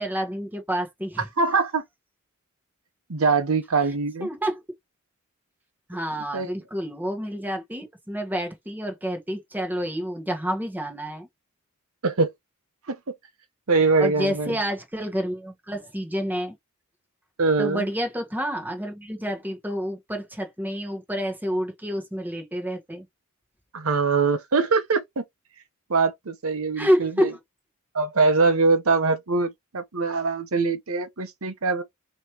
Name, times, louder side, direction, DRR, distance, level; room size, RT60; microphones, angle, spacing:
voice 1, 0.0-1.2 4.2-4.6 5.9-11.3 14.0-16.5 17.6-23.0 26.8-27.4, equal, 10° right, 1.4 m, -28 dB
voice 2, 1.4-1.8 3.1-4.3 6.3-6.5 12.0-12.3 12.9-13.1 13.7-14.6 17.4-17.9 23.7-25.2 25.9-27.3 27.9-31.8, right 4 dB, 75° right, 0.9 m, -23 dB
5.2 x 3.1 x 2.9 m
head